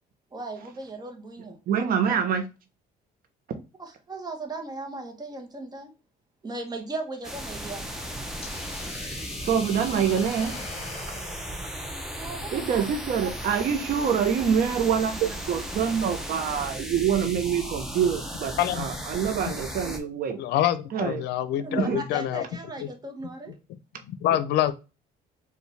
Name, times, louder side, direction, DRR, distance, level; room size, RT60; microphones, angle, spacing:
voice 1, 0.3-1.6 3.8-5.9 6.4-7.9 12.2-12.9 21.6-23.5, right 2 dB, 25° right, 1.1 m, -37 dB
voice 2, 1.7-2.4 9.4-10.6 12.5-20.4 20.9-21.2 21.8-22.0, right 7 dB, 60° right, 1.0 m, -25 dB
sound 1, 7.2-20.0, equal, 5° right, 0.9 m, -36 dB
Hiss, 8.4-12.7, left 4 dB, 35° left, 0.7 m, -42 dB
voice 3, 20.4-22.4 24.1-24.7, left 12 dB, 80° left, 0.6 m, -26 dB
4.6 x 2.6 x 3.2 m
cardioid pair, 110°, 17 cm